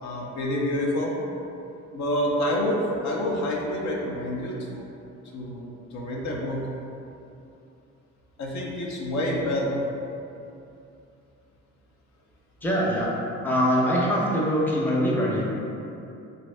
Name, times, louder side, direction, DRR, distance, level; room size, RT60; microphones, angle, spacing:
voice 1, 0.0-1.1 1.9-4.9 5.3-6.6 8.4-9.8, left 1 dB, 65° left, -2 dB, 0.6 m, -28 dB
voice 2, 12.6-13.1 13.4-15.6, equal, 5° left, -5 dB, 0.6 m, -23 dB
3.3 x 2.6 x 3.2 m, 2.7 s
cardioid pair, 90°, 30 cm